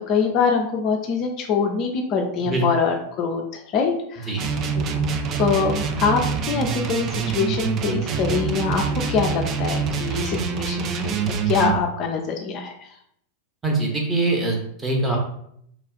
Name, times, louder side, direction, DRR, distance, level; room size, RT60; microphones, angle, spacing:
voice 1, 0.0-4.3 4.7-5.0 5.4-8.8 9.1-12.9, left 5 dB, 35° left, 2 dB, 0.4 m, -24 dB
sound 1, 4.4-11.8, right 5 dB, 35° right, 0.3 m, -25 dB
sound 2, 6.8-9.2 11.8-11.9, right 11 dB, 75° right, 1.2 m, -44 dB
voice 2, 13.6-15.2, right 2 dB, 15° right, 0 dB, 0.9 m, -23 dB
3.1 x 2.4 x 3.7 m, 0.70 s
figure-of-eight pair, 90°, 0 cm